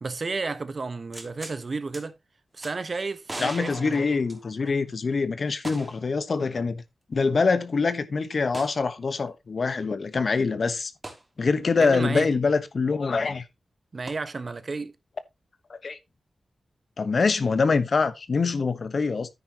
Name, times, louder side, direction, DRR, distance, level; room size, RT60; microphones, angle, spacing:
voice 1, 0.0-2.1 2.5-4.1 11.8-12.3 13.9-14.9, right 4 dB, 50° right, 1.2 m, -32 dB
sound 1, 1.1-1.6 1.9-2.0 2.6-2.7 3.3-4.8 5.6-6.1 6.4-6.5 8.5-8.8 11.0-11.2 14.1-14.2, right 1 dB, 25° right, 2.9 m, -39 dB
voice 2, 3.4-6.8 7.1-10.9 11.4-13.4 15.7-16.0 17.0-19.3, left 4 dB, 60° left, 1.1 m, -24 dB
9.6 x 9.4 x 2.9 m
cardioid pair, 55°, 0 cm